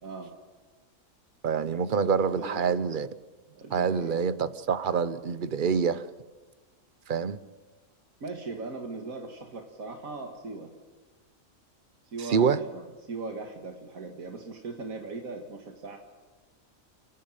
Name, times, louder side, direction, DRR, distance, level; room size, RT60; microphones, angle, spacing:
voice 1, 0.0-0.3 1.9-2.6 3.5-4.2 8.2-10.7 12.1-12.8 13.1-16.0, right 3 dB, 90° right, 2.3 m, -39 dB
voice 2, 1.4-3.1 3.7-6.1 7.1-7.4 12.2-12.6, right 6 dB, 45° right, 0.9 m, -26 dB
30.0 x 11.0 x 9.1 m
omnidirectional pair, 1.4 m